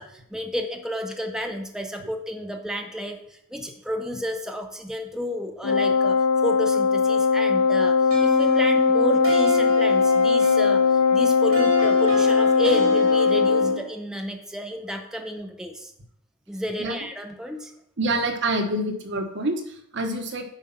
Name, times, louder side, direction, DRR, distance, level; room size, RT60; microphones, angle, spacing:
voice 1, 0.0-6.2 6.4-15.9 16.5-17.7, equal, 5° right, 3 dB, 0.6 m, -31 dB
Wind instrument woodwind instrument, 5.6-13.8, left 5 dB, 75° left, 0.6 m, -19 dB
sound 1, 8.1-13.9, left 1 dB, 90° right, 2.7 m, -31 dB
voice 2, 18.0-20.4, right 1 dB, 55° right, 5 dB, 1.2 m, -27 dB
9.1 x 5.1 x 5.8 m, 0.73 s
head